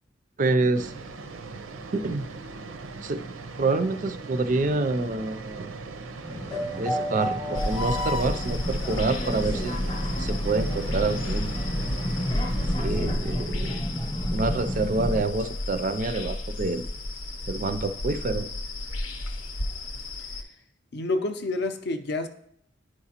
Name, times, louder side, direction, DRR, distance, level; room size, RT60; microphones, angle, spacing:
voice 1, 0.4-0.9 1.9-2.3 3.0-5.8 6.8-11.6 12.8-13.8 14.3-16.9 17.5-18.5, right 3 dB, 40° right, 0.3 m, -27 dB
sound 1, 0.7-12.8, right 3 dB, 85° right, 0.6 m, -40 dB
sound 2, 6.2-15.2, equal, 20° left, 0.8 m, -32 dB
sound 3, 7.5-20.4, left 1 dB, 85° left, 0.8 m, -31 dB
voice 2, 20.9-22.3, left 2 dB, 55° left, 0.5 m, -28 dB
10.0 x 4.8 x 2.8 m
head